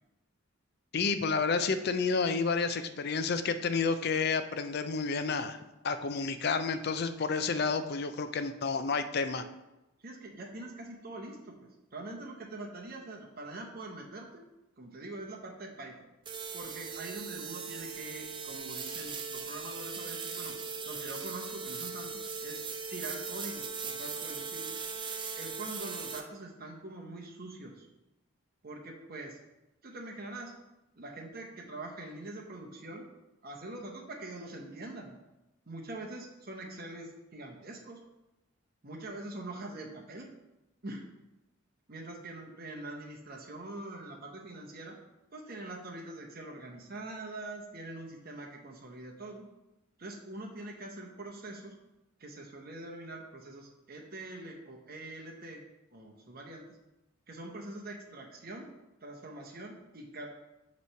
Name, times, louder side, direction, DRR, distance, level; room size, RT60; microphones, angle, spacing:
voice 1, 0.9-5.6 5.8-9.4, left 4 dB, 45° left, 10 dB, 0.4 m, -30 dB
voice 2, 10.0-14.4 14.8-15.9 16.5-20.6 20.8-22.6 22.9-24.7 25.4-27.9 28.6-29.4 29.8-30.5 31.0-33.1 33.4-35.1 35.7-38.0 38.8-40.3 40.8-41.0 41.9-45.0 45.3-49.4 50.0-51.7 52.2-55.6 55.9-56.7 57.3-58.7 59.0-60.3, right 2 dB, 45° right, 2 dB, 0.8 m, -44 dB
sound 1, 16.2-26.2, right 5 dB, 20° right, 0.4 m, -39 dB
8.3 x 3.1 x 5.6 m, 0.98 s
head